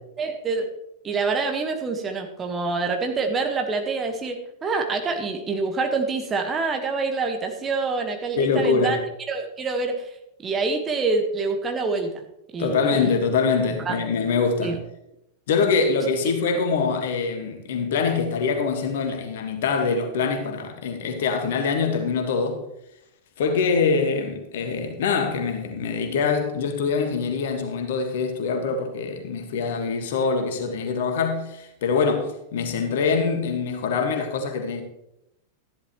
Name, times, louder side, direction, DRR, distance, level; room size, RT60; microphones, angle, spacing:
voice 1, 0.2-0.7 1.0-9.0 9.3-9.9 10.4-12.2 12.5-13.1 13.8-14.0 14.6-14.8, right 4 dB, 20° right, 1.5 m, -26 dB
voice 2, 8.4-9.0 12.6-14.8 15.5-22.6 23.4-34.8, left 5 dB, 55° left, 1.7 m, -24 dB
13.5 x 11.5 x 3.1 m
figure-of-eight pair, 90°, 0 cm